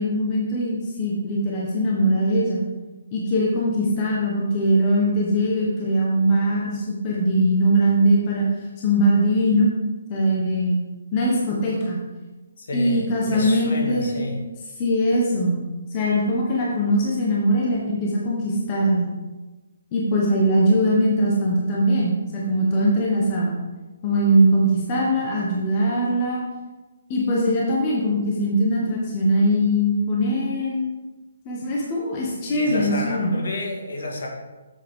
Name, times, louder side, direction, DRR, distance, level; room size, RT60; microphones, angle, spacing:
voice 1, 0.0-2.6 3.1-8.4 8.8-9.7 10.1-10.8 11.1-12.0 12.7-14.4 14.8-15.6 15.9-19.1 19.9-23.6 24.0-26.4 27.1-30.8 31.4-33.4, equal, 20° left, -4 dB, 1.1 m, -21 dB
voice 2, 12.6-14.4 32.5-34.3, left 2 dB, 60° left, 0 dB, 2.0 m, -30 dB
7.7 x 7.6 x 3.7 m, 1.2 s
hypercardioid pair, 175°, 0 cm